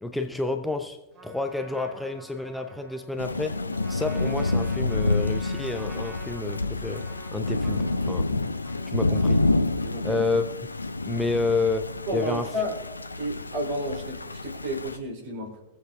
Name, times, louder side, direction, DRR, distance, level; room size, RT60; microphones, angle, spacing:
voice 1, 0.0-1.0 1.2-3.6 3.9-7.0 7.3-8.3 8.9-9.4 10.0-10.4 11.1-12.5, left 3 dB, 5° left, 0.6 m, -29 dB
Trumpet, 1.1-9.8, left 1 dB, 20° right, 3.3 m, -47 dB
Thunder / Rain, 3.2-15.0, left 2 dB, 80° left, 0.5 m, -28 dB
voice 2, 9.8-10.2 12.1-12.8 13.2-15.6, equal, 50° right, 3.4 m, -31 dB
23.0 x 8.1 x 2.4 m
figure-of-eight pair, 90°, 0 cm